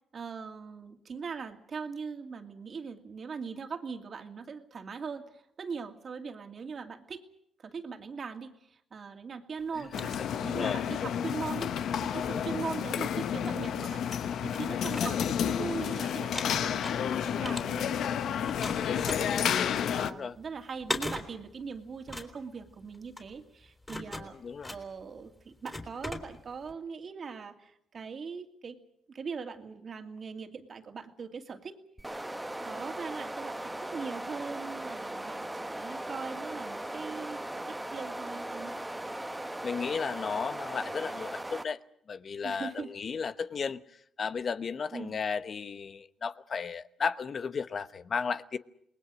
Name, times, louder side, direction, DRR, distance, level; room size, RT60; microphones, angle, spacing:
voice 1, 0.1-7.2 7.6-14.0 14.4-24.4 24.7-28.8 29.1-31.8 32.6-38.7 42.4-42.9 44.9-45.2, right 5 dB, 45° right, 2.5 m, -41 dB
sound 1, 9.6-10.9 11.4-13.0 13.6-13.7 14.0-15.9 16.2-18.1 18.4-26.7, left 1 dB, 15° left, 3.9 m, -41 dB
sound 2, 9.9-20.1, left 8 dB, 70° left, 1.0 m, -30 dB
voice 2, 10.3-10.8 15.0-15.3 20.1-20.4 24.2-24.7 39.6-41.8 42.1-43.8 44.2-48.6, left 5 dB, 45° left, 1.0 m, -34 dB
sound 3, 32.0-41.6, right 1 dB, 10° right, 1.2 m, -38 dB
28.0 x 20.0 x 6.3 m
cardioid pair, 90°, 0 cm